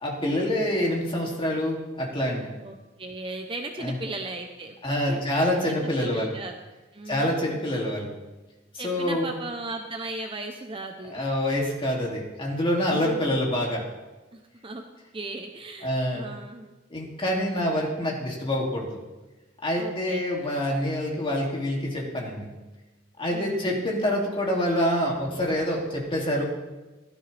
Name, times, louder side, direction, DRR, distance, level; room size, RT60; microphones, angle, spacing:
voice 1, 0.0-2.5 3.8-4.0 4.8-6.3 7.1-8.1 8.8-9.3 11.1-13.8 15.8-16.3 16.9-18.9 19.6-22.5 23.2-26.5, left 1 dB, 25° left, -2 dB, 2.8 m, -26 dB
voice 2, 2.6-4.8 5.1-5.2 5.8-6.5 6.9-7.6 8.8-11.2 12.9-13.4 14.3-14.8 15.1-16.7 19.8-20.2 23.3-23.8, right 2 dB, 25° right, 4 dB, 0.9 m, -37 dB
16.5 x 13.0 x 3.5 m, 1.1 s
head